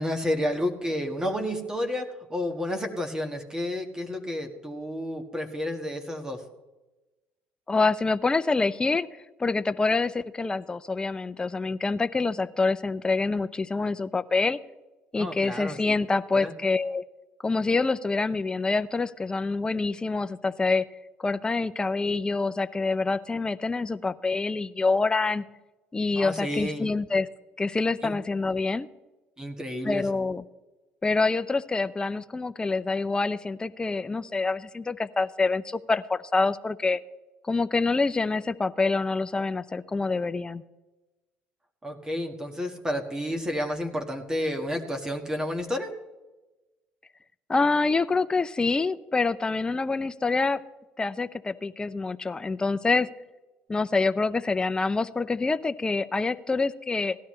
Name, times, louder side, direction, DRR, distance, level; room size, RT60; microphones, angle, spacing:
voice 1, 0.0-6.4 15.1-15.8 16.3-16.5 26.2-26.9 28.0-28.1 29.4-30.0 41.8-45.9, left 1 dB, 15° right, 4 dB, 1.6 m, -30 dB
voice 2, 7.7-9.1 9.4-14.6 15.1-17.0 17.4-20.8 21.2-25.4 25.9-27.3 27.6-28.9 29.8-30.4 31.0-37.0 37.5-40.6 47.5-50.6 51.0-53.1 53.7-57.2, left 3 dB, 20° left, 13 dB, 0.5 m, -26 dB
17.0 x 12.0 x 3.2 m, 1.1 s
supercardioid pair, 80°, 5 cm